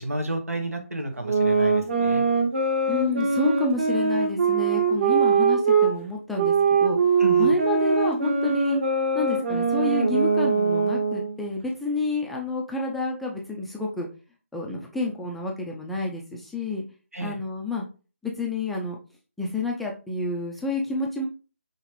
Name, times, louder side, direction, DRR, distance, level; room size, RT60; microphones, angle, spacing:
voice 1, 0.0-2.2 7.2-7.5 17.1-17.4, right 1 dB, 85° right, 5 dB, 1.4 m, -31 dB
sound 1, 1.2-5.9 6.4-11.3, right 4 dB, 50° right, 1.5 m, -22 dB
voice 2, 2.9-6.5 6.8-7.0 7.4-8.8 9.1-14.1 14.5-16.8 17.2-17.9 18.2-19.0 19.4-21.3, left 2 dB, ahead, -2 dB, 0.4 m, -29 dB
5.7 x 3.1 x 3.0 m, 0.34 s
figure-of-eight pair, 155°, 8 cm